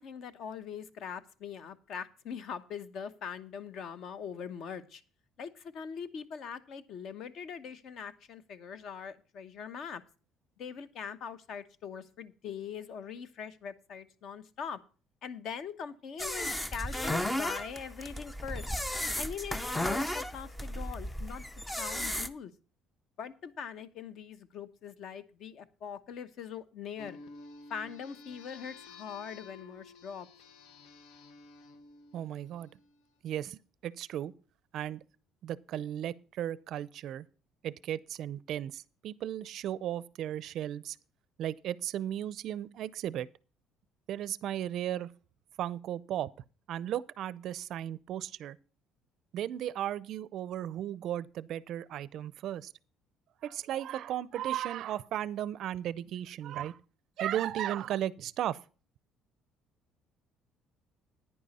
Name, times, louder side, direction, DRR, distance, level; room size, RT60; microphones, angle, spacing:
voice 1, 0.0-5.0 5.4-10.0 10.6-14.8 15.2-18.7 19.2-21.4 21.8-22.5 23.2-27.2 27.7-30.3, left 7 dB, 50° left, 0.9 m, -42 dB
sound 1, 16.2-22.3, left 1 dB, 5° left, 0.5 m, -34 dB
sound 2, 27.0-33.0, left 3 dB, 80° left, 1.1 m, -52 dB
voice 2, 32.1-32.7 33.2-34.3 34.7-35.0 35.4-37.3 37.6-41.0 41.4-43.3 44.1-45.1 45.6-46.3 46.7-48.6 49.3-52.7 53.4-56.8 57.2-58.6, right 11 dB, 50° right, 0.5 m, -35 dB
10.0 x 9.8 x 4.1 m
cardioid pair, 165°, 0 cm